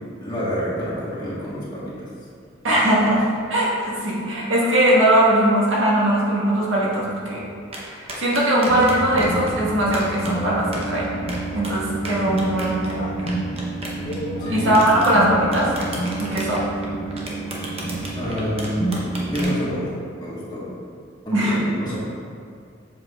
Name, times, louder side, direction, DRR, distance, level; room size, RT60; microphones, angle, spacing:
voice 1, 0.2-2.1 14.4-14.8 18.1-18.9 19.3-20.7 21.2-22.0, equal, 20° left, -8 dB, 1.5 m, -28 dB
voice 2, 2.6-7.4 7.8-11.1 11.5-13.1 14.5-15.7 16.2-16.6 21.3-21.6, right 1 dB, 75° right, -6 dB, 1.5 m, -20 dB
sound 1, 7.7-9.5 9.9-10.3 10.7-11.7 12.0-14.5 14.7-15.1 15.5-19.6, right 1 dB, 30° right, 0.9 m, -34 dB
sound 2, 8.7-19.4, right 2 dB, 40° left, 1.0 m, -29 dB
7.4 x 6.0 x 2.4 m, 2.3 s
head